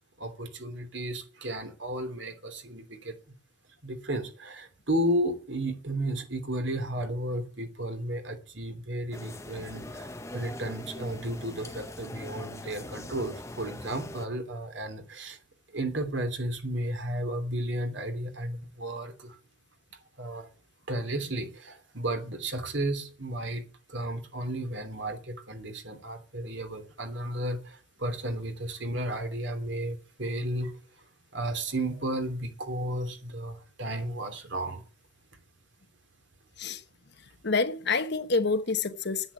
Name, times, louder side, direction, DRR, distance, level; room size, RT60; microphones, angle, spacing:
voice 1, 0.2-3.1 3.8-15.4 15.7-19.4 20.2-20.5 20.9-23.6 23.9-30.7 31.3-34.8, right 1 dB, 60° right, 3.0 m, -33 dB
sound 1, 9.1-14.3, left 1 dB, 15° left, 0.9 m, -42 dB
voice 2, 37.4-39.3, left 4 dB, 55° left, 1.1 m, -27 dB
10.0 x 9.4 x 9.9 m
head